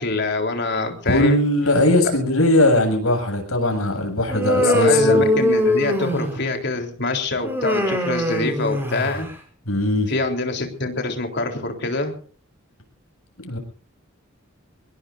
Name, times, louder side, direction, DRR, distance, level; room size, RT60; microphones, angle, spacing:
voice 1, 0.0-1.4 2.0-2.1 4.6-9.3 10.1-12.1, left 2 dB, 55° left, 4 dB, 3.8 m, -25 dB
voice 2, 1.1-5.2 9.7-10.1 13.4-13.6, left 1 dB, 90° left, 3 dB, 7.5 m, -19 dB
Human voice, 4.3-6.6 7.4-9.3, left 1 dB, 10° right, 6.0 m, -21 dB
25.0 x 21.5 x 2.7 m, 0.42 s
head